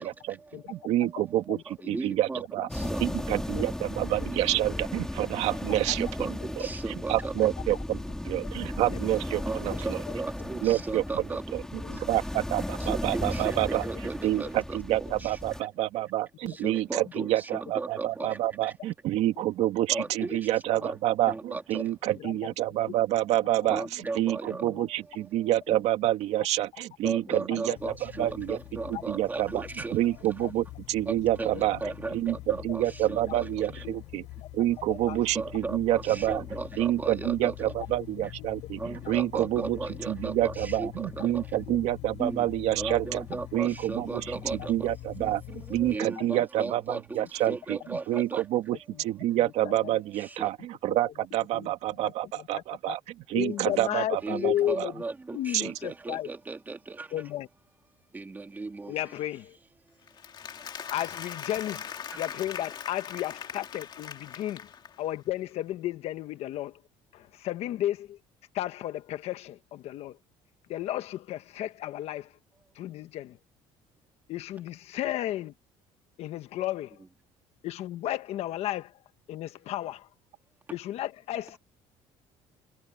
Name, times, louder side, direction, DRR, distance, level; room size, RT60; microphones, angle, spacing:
voice 1, 0.0-0.4 0.7-2.7 3.0-6.3 7.1-10.0 10.6-11.2 11.5-13.8 14.2-28.6 29.1-29.6 29.9-31.8 32.1-34.3 34.5-36.4 36.8-39.8 40.1-43.2 43.5-53.0 53.3-54.5 55.5-55.7, right 14 dB, 70° right, 2.3 m, -28 dB
voice 2, 1.0-1.9 3.3-3.6 5.9-6.0 8.6-9.0 9.6-9.8 10.9-11.0 11.8-12.0 12.8-12.9 16.4-16.6 19.6-19.7 20.7-20.8 22.2-22.4 23.8-23.9 24.6-24.9 25.7-25.8 27.5-27.8 28.9-29.0 30.4-30.5 31.7-31.8 32.0-32.2 32.6-32.7 33.2-33.3 33.8-33.9 34.4-34.5 34.9-35.2 38.2-38.3 39.0-39.3 39.6-39.7 41.7-41.8 42.9-43.0 43.7-43.8 46.2-46.4 47.2-47.3 49.4-50.0 51.5-51.7 52.0-53.0 53.3-54.9 55.3-56.3 57.1-57.5 58.9-59.6 60.9-61.9 62.2-64.7 65.0-66.8 67.1-68.2 68.5-70.2 70.7-72.3 72.7-73.4 74.3-75.5 76.2-77.0 77.6-79.0 79.3-80.1 80.7-81.6, left 13 dB, 60° left, 1.3 m, -34 dB
voice 3, 1.9-2.4 2.7-3.0 5.7-7.3 9.4-9.6 9.8-11.4 12.9-14.8 16.6-18.4 19.9-20.4 20.8-20.9 21.3-21.8 23.7-24.6 27.0-30.0 31.1-31.5 31.8-32.4 32.7-32.8 33.1-33.7 35.3-37.7 38.8-41.3 42.2-42.4 42.8-44.7 45.8-47.0 47.5-48.4 50.4-50.5 54.2-56.8 58.1-58.9, right 3 dB, 15° right, 2.3 m, -36 dB
sound 1, 2.7-15.6, left 1 dB, 5° left, 3.7 m, -35 dB
sound 2, 27.8-46.0, left 18 dB, 80° left, 4.2 m, -44 dB
Applause, 60.1-65.1, left 8 dB, 40° left, 2.2 m, -40 dB
cardioid pair, 135°, 12 cm